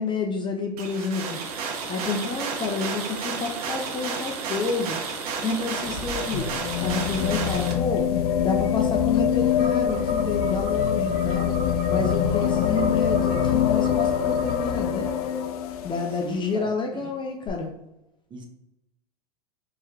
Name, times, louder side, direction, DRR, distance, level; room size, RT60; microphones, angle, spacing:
voice 1, 0.0-1.4 1.9-5.0 5.4-6.5 6.8-8.1 8.4-11.6 11.9-15.1 15.8-17.7, left 4 dB, 25° left, 2 dB, 0.7 m, -29 dB
sound 1, 0.8-7.7, right 5 dB, 65° right, 1.1 m, -32 dB
sound 2, 5.3-16.3 17.5-17.6, left 9 dB, 60° left, 0.6 m, -25 dB
sound 3, 9.6-14.6, right 3 dB, 40° right, 1.2 m, -40 dB
voice 2, 16.2-17.1 18.3-18.4, right 2 dB, 20° right, 2 dB, 0.9 m, -39 dB
4.6 x 3.1 x 2.9 m, 0.88 s
hypercardioid pair, 105°, 21 cm